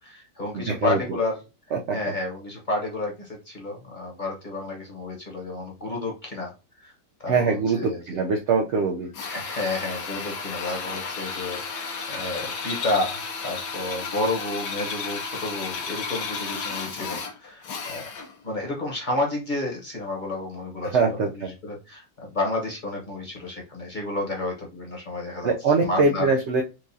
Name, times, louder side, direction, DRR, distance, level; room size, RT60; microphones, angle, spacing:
voice 1, 0.0-1.4 1.9-6.5 6.8-6.9 7.2-8.2 9.2-18.1 18.4-25.5 25.8-26.2, left 2 dB, 30° left, -1 dB, 1.0 m, -31 dB
voice 2, 0.5-1.0 1.7-2.0 7.3-9.1 20.9-21.5 25.4-26.6, right 4 dB, 75° right, 2 dB, 0.6 m, -23 dB
Drill, 9.1-18.4, left 5 dB, 75° left, 1.5 m, -33 dB
4.6 x 2.4 x 2.6 m, 0.27 s
omnidirectional pair, 1.9 m